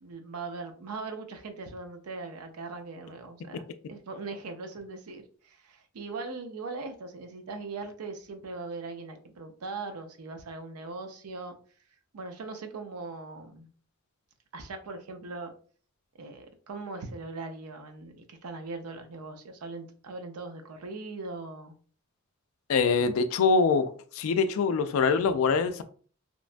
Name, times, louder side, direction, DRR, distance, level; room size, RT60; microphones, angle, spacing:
voice 1, 0.0-3.6 3.9-11.5 12.1-13.7 14.5-15.5 16.2-21.7, right 3 dB, 90° right, 0.5 m, -40 dB
voice 2, 22.7-23.9 24.2-25.8, left 5 dB, 70° left, 0.3 m, -24 dB
3.0 x 2.2 x 2.4 m
head